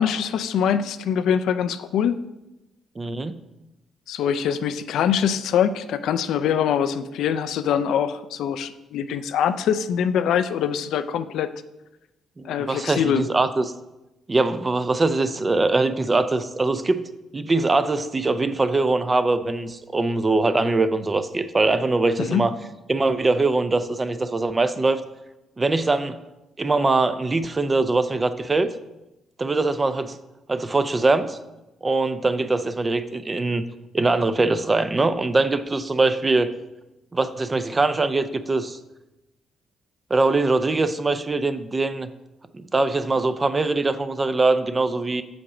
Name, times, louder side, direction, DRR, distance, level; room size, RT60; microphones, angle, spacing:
voice 1, 0.0-2.2 4.1-11.5 12.4-13.2 22.2-22.4, left 8 dB, 80° left, 12 dB, 0.4 m, -23 dB
voice 2, 3.0-3.3 12.4-13.6 14.3-17.0 17.3-22.5 22.9-25.0 25.6-26.2 26.6-28.7 29.4-30.2 30.5-31.4 31.8-33.6 33.9-36.5 37.1-38.8 40.1-42.1 42.5-45.2, right 3 dB, 25° right, 11 dB, 0.5 m, -22 dB
7.0 x 5.2 x 4.9 m, 0.97 s
cardioid pair, 90°, 0 cm